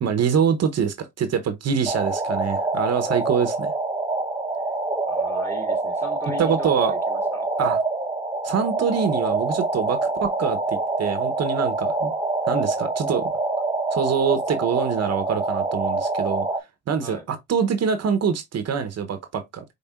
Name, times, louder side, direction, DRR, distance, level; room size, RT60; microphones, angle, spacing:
voice 1, 0.0-3.7 6.4-6.9 7.6-7.8 8.4-12.1 12.5-13.3 13.9-16.5 16.9-19.6, right 7 dB, 55° right, 0.9 m, -24 dB
sound 1, 1.9-16.6, right 3 dB, 15° right, 0.9 m, -26 dB
voice 2, 5.0-7.5 17.0-17.2, left 1 dB, 10° left, 1.7 m, -38 dB
5.6 x 3.7 x 2.4 m
cardioid pair, 90°, 30 cm